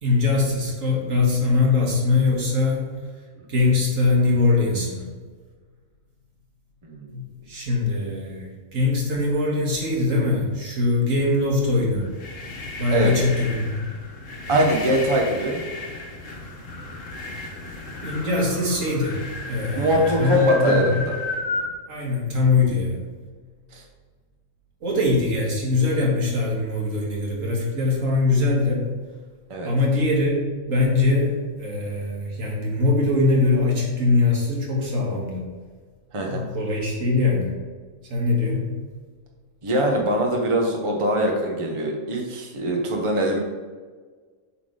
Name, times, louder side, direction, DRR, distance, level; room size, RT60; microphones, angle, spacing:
voice 1, 0.0-3.0 3.5-5.0 7.1-12.1 12.8-13.9 18.0-19.2 19.5-21.0 21.9-23.0 24.8-28.8 29.6-35.4 36.3-37.5 38.1-38.7, left 3 dB, 80° right, -3 dB, 2.1 m, -22 dB
voice 2, 6.8-7.1 12.9-13.1 14.5-15.6 19.7-21.0 23.7-23.8 29.5-29.7 36.1-36.4 39.6-43.4, equal, 25° right, 1 dB, 0.9 m, -22 dB
sound 1, 12.0-21.7, left 2 dB, 75° left, 1.5 m, -34 dB
7.4 x 4.0 x 5.0 m, 1.5 s
omnidirectional pair, 1.3 m